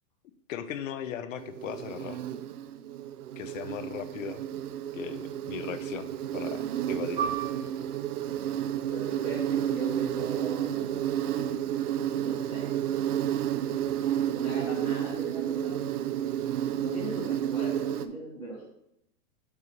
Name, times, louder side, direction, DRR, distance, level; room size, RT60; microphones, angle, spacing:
voice 1, 0.5-2.2 3.4-4.4 4.9-7.3, left 9 dB, 60° left, 11 dB, 0.7 m, -38 dB
Insect, 1.4-18.1, right 11 dB, 80° right, 0.6 m, -31 dB
Piano, 7.2-12.2 12.5-12.7 13.5-13.8, right 7 dB, 15° right, 1.1 m, -39 dB
voice 2, 8.8-11.1 12.2-12.7 14.3-15.7 16.7-18.6, right 1 dB, 5° left, -12 dB, 1.3 m, -39 dB
6.8 x 3.0 x 5.2 m, 0.78 s
supercardioid pair, 175°, 44 cm